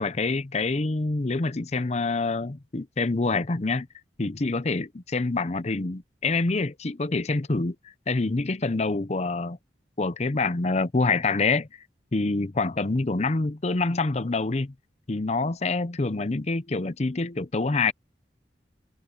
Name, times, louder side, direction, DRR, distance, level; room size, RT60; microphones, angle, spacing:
voice 1, 0.0-3.9 4.2-9.6 10.0-11.7 12.1-14.7 15.1-17.9, left 3 dB, 40° left, 0.7 m, -26 dB
head